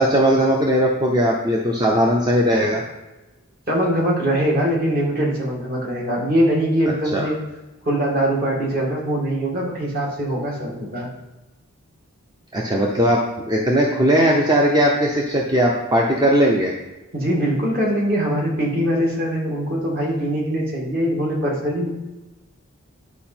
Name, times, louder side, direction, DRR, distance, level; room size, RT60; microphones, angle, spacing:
voice 1, 0.0-2.8 7.1-7.3 12.5-13.2 13.5-16.7, equal, 20° right, -1 dB, 0.7 m, -18 dB
voice 2, 3.7-7.4 7.8-11.1 17.1-21.9, equal, 45° right, -3 dB, 2.1 m, -22 dB
10.5 x 5.0 x 4.4 m, 1.1 s
head